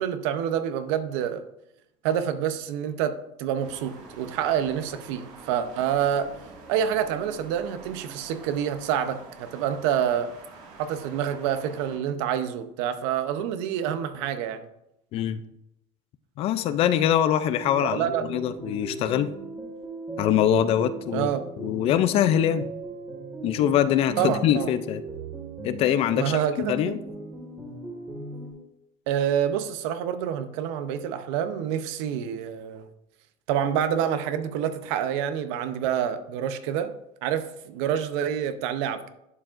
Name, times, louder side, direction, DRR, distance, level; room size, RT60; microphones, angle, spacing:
voice 1, 0.0-1.4 2.0-3.1 3.4-6.3 6.7-10.3 10.8-14.7 17.8-18.3 21.1-21.4 24.2-24.7 26.2-27.0 29.1-32.9 33.5-36.9 37.2-39.1, right 9 dB, 80° right, 10 dB, 0.7 m, -27 dB
sound 1, 3.6-12.0, right 3 dB, 55° right, 1.9 m, -47 dB
voice 2, 16.4-19.3 20.2-21.3 21.6-22.7 23.4-25.0 25.6-27.0, left 10 dB, 40° left, 13 dB, 0.4 m, -23 dB
sound 2, 17.4-28.5, right 3 dB, 15° right, 2.0 m, -38 dB
11.0 x 4.9 x 2.5 m, 0.83 s
cardioid pair, 150°, 15 cm